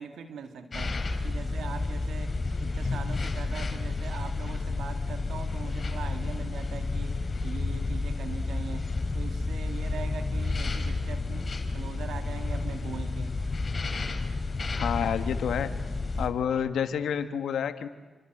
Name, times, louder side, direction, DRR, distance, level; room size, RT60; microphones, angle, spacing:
voice 1, 0.0-13.4 16.1-16.4, right 6 dB, 90° right, 8 dB, 1.9 m, -42 dB
sound 1, 0.7-16.3, left 3 dB, 50° left, 4.2 m, -31 dB
voice 2, 14.8-15.7 16.2-17.9, left 8 dB, 90° left, 10 dB, 1.5 m, -29 dB
28.5 x 26.0 x 7.8 m, 1.3 s
cardioid pair, 55°, 0 cm